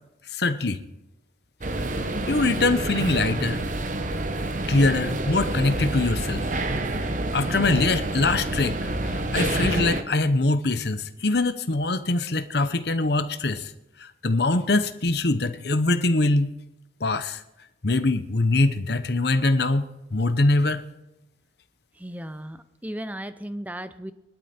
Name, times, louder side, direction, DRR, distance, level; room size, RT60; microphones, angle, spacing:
voice 1, 0.3-0.8 2.3-3.6 4.7-6.5 7.3-13.7 14.0-16.5 17.0-17.4 17.8-20.8, left 2 dB, 55° left, 10 dB, 1.0 m, -23 dB
sound 1, 1.6-10.0, right 2 dB, 40° right, 1.0 m, -28 dB
voice 2, 22.0-24.1, right 1 dB, 10° right, 11 dB, 0.7 m, -35 dB
21.5 x 12.0 x 4.4 m, 0.92 s
head